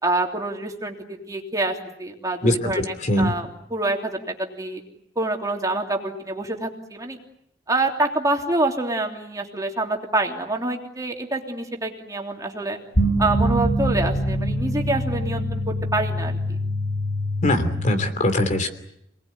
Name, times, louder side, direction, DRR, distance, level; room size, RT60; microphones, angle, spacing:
voice 1, 0.0-4.8 5.1-7.2 7.7-12.8 13.2-16.6, right 2 dB, 20° right, 1 dB, 3.2 m, -26 dB
voice 2, 2.4-3.3 17.4-18.7, left 1 dB, 40° left, 7 dB, 3.1 m, -22 dB
sound 1, 12.9-18.1, equal, 65° left, 7.7 m, -24 dB
28.0 x 20.0 x 9.6 m, 0.75 s
head